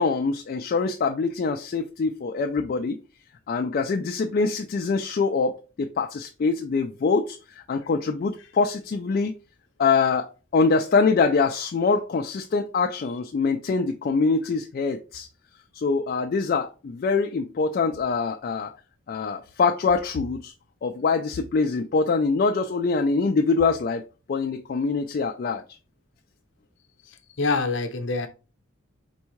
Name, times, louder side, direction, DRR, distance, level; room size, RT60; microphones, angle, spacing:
voice 1, 0.0-3.0 3.5-9.3 9.8-15.3 15.7-18.7 19.1-20.5 20.8-24.0 24.3-25.6, left 4 dB, 45° left, 4 dB, 0.3 m, -24 dB
voice 2, 27.4-28.3, left 3 dB, 60° left, 6 dB, 0.7 m, -25 dB
4.5 x 3.5 x 3.0 m, 0.33 s
head